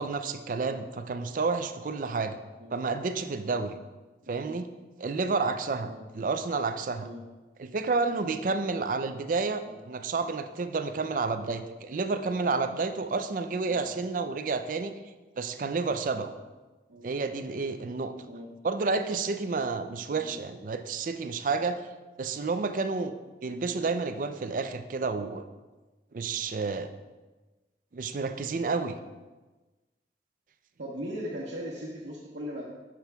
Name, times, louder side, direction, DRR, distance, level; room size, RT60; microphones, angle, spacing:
voice 1, 0.0-2.4 2.7-3.8 4.3-4.7 5.0-7.1 7.6-14.9 15.4-16.3 17.0-18.1 18.6-21.8 22.2-23.1 23.4-25.4 26.1-26.9 27.9-29.0, right 4 dB, 50° right, 9 dB, 0.4 m, -30 dB
voice 2, 30.8-32.6, equal, 85° right, -7 dB, 1.1 m, -39 dB
10.5 x 5.9 x 2.3 m, 1.2 s
head